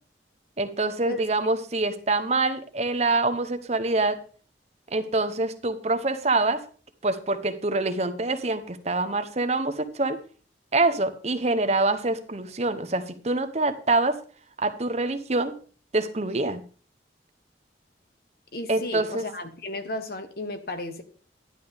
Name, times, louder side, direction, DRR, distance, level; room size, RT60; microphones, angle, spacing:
voice 1, 0.6-4.2 4.9-6.7 7.0-10.2 10.7-14.2 14.6-15.5 15.9-16.6 18.7-19.2, right 2 dB, 35° right, 10 dB, 0.9 m, -25 dB
voice 2, 18.5-21.0, left 1 dB, 55° left, 8 dB, 1.3 m, -34 dB
11.0 x 11.0 x 3.5 m, 0.41 s
head